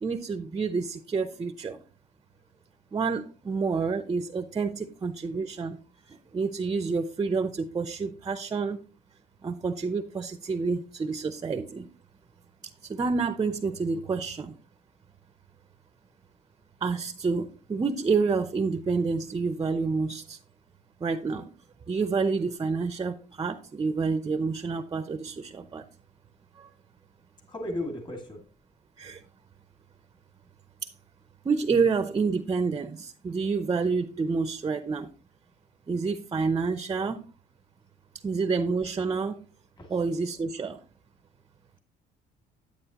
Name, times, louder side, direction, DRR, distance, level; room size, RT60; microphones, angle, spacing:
voice 1, 0.0-1.8 2.9-5.8 6.1-8.8 9.4-11.9 12.8-14.5 16.8-20.4 21.0-21.5 21.9-25.9 26.6-26.7 29.0-29.2 30.8-30.9 31.4-35.1 35.9-37.2 38.2-39.4 39.9-40.8, right 4 dB, 25° right, 11 dB, 0.6 m, -28 dB
voice 2, 27.5-28.4 39.8-40.0, left 1 dB, 25° left, 3 dB, 2.2 m, -35 dB
10.0 x 8.9 x 2.9 m, 0.35 s
cardioid pair, 110°, 17 cm